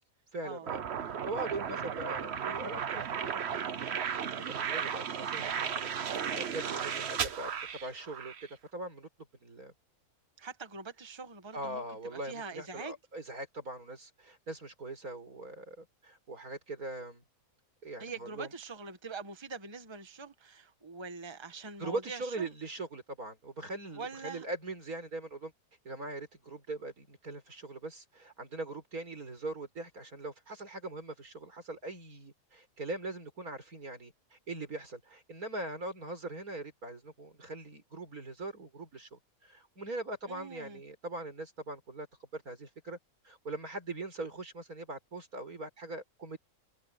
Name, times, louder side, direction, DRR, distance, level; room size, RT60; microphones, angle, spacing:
voice 1, 0.3-4.2 4.4-5.9 6.3-9.1 9.4-9.7 11.5-17.2 17.8-18.5 21.8-25.5 25.8-42.1 42.3-43.0 43.2-46.4, right 2 dB, 85° right, 5.8 m, -41 dB
sound 1, 0.7-8.5, right 7 dB, 50° right, 1.1 m, -35 dB
voice 2, 10.4-11.8 12.1-13.0 18.0-22.5 23.9-24.4 40.3-40.8, right 4 dB, 20° right, 1.5 m, -44 dB
omnidirectional pair, 1.5 m